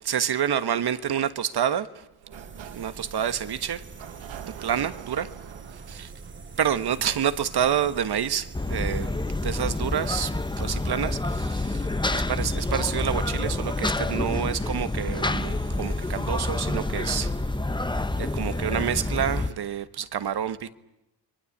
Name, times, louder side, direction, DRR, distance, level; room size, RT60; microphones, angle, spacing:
voice 1, 0.0-2.1 2.6-3.8 4.5-5.3 5.7-6.1 6.6-9.1 9.4-11.9 12.1-17.4 18.2-20.7, right 9 dB, 55° right, 1.4 m, -28 dB
Sliding door, 2.1-7.8, right 10 dB, 75° right, 1.6 m, -45 dB
sound 1, 2.3-19.5, right 4 dB, 25° right, 1.5 m, -44 dB
sound 2, 8.5-19.5, left 2 dB, 10° left, 1.1 m, -28 dB
27.5 x 22.0 x 8.6 m
cardioid pair, 85°, 48 cm